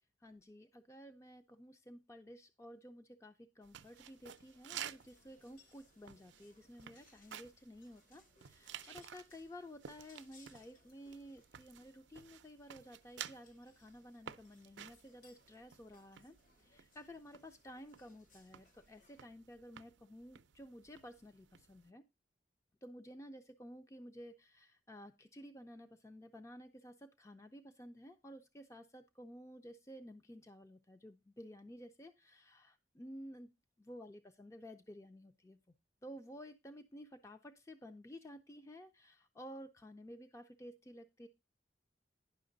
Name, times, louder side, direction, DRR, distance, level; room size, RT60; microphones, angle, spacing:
voice 1, 0.2-22.0 22.8-33.5 33.8-35.6 36.0-41.3, equal, 15° left, 7 dB, 0.5 m, -53 dB
sound 1, 3.6-21.9, right 9 dB, 80° right, 0.5 m, -54 dB
sound 2, 3.7-19.3, left 4 dB, 45° left, 1.0 m, -70 dB
10.5 x 5.9 x 3.9 m, 0.25 s
head